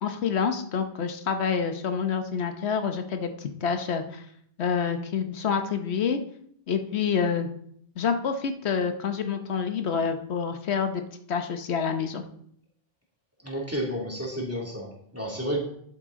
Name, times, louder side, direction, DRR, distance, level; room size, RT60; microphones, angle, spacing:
voice 1, 0.0-4.2 4.6-6.2 6.7-7.5 8.0-11.0 11.3-12.2, left 6 dB, 90° left, 7 dB, 1.2 m, -27 dB
voice 2, 13.4-15.6, equal, 15° right, -2 dB, 2.3 m, -31 dB
11.0 x 8.1 x 3.7 m, 0.67 s
omnidirectional pair, 1.1 m